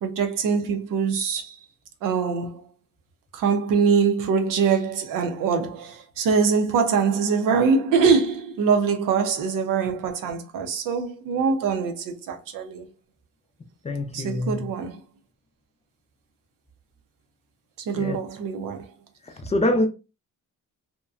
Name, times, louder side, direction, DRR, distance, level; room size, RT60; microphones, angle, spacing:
voice 1, 0.0-1.6 2.0-2.7 3.3-12.9 14.1-15.0 17.9-18.9, right 5 dB, 80° right, 0.7 m, -23 dB
voice 2, 13.8-14.7 17.9-18.2 19.2-19.9, left 1 dB, 20° left, 0.4 m, -25 dB
2.8 x 2.2 x 2.3 m
cardioid pair, 125°, 32 cm